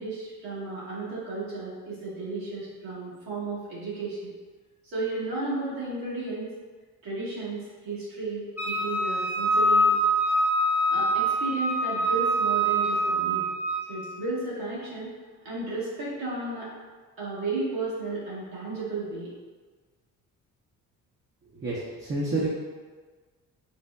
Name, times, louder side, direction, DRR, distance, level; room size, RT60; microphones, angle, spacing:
voice 1, 0.0-4.3 4.8-6.5 7.0-9.9 10.9-13.5 13.9-15.1 15.4-16.7 17.2-19.3, right 3 dB, 75° right, -8 dB, 1.3 m, -33 dB
Wind instrument woodwind instrument, 8.6-13.9, right 1 dB, 5° right, 0.8 m, -24 dB
voice 2, 21.6-22.5, right 2 dB, 30° right, -6 dB, 0.6 m, -28 dB
4.1 x 2.1 x 2.2 m, 1.4 s
supercardioid pair, 60°, 35 cm